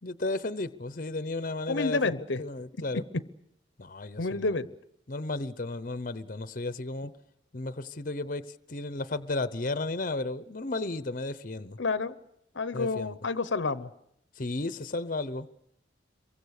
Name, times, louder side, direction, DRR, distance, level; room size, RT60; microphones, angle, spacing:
voice 1, 0.0-3.0 3.8-4.6 5.1-7.1 7.5-11.8 12.7-13.2 14.4-15.6, left 2 dB, 45° left, 13 dB, 0.8 m, -34 dB
voice 2, 1.7-2.4 4.2-4.7 11.8-12.1 12.5-13.9, left 3 dB, 75° left, 14 dB, 0.8 m, -29 dB
27.0 x 23.5 x 6.6 m, 0.77 s
head